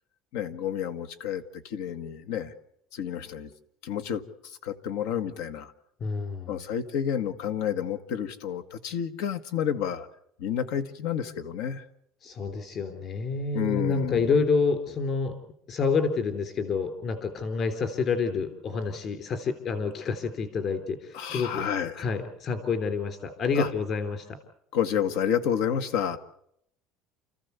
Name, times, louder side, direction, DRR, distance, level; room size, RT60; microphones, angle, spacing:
voice 1, 0.3-2.5 2.9-3.5 3.8-5.7 6.5-10.1 10.4-11.9 13.5-14.3 21.1-22.0 23.6-23.7 24.7-26.2, left 9 dB, 80° left, 10 dB, 1.7 m, -30 dB
voice 2, 6.0-6.6 12.2-15.4 15.7-21.7 22.0-24.4, left 4 dB, 35° left, 6 dB, 3.5 m, -28 dB
29.5 x 14.5 x 8.2 m, 0.75 s
cardioid pair, 160°, 0 cm